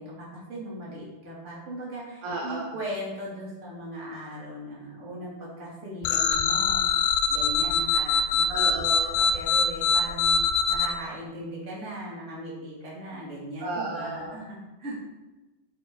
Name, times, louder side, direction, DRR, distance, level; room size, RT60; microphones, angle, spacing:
voice 1, 0.0-6.9 7.3-8.5 9.2-14.9, equal, 20° right, -6 dB, 2.6 m, -38 dB
voice 2, 2.2-2.7 8.5-9.2 13.6-14.4, right 2 dB, 65° right, -1 dB, 2.1 m, -33 dB
sound 1, 6.0-10.9, left 5 dB, 80° left, 2.1 m, -23 dB
9.3 x 7.5 x 4.0 m, 1.1 s
omnidirectional pair, 4.7 m